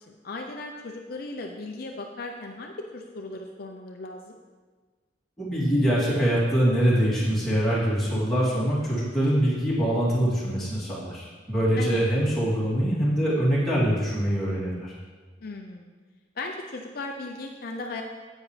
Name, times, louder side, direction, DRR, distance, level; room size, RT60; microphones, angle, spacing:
voice 1, 0.1-4.4 11.8-12.0 15.4-15.9 16.4-18.0, left 2 dB, 55° left, 2 dB, 0.6 m, -37 dB
voice 2, 5.4-14.9, equal, ahead, -9 dB, 2.8 m, -24 dB
10.0 x 8.3 x 3.3 m, 1.4 s
head